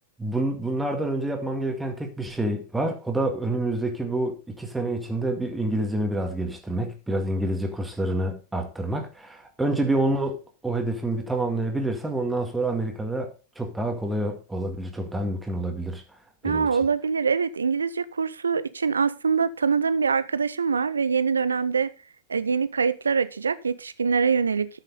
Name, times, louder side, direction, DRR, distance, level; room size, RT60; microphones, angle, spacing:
voice 1, 0.2-16.0 16.4-16.7, right 1 dB, 5° right, 2.1 m, -28 dB
voice 2, 16.4-21.9 22.3-24.8, right 5 dB, 75° right, 0.7 m, -24 dB
13.0 x 6.7 x 4.0 m
figure-of-eight pair, 90°, 0 cm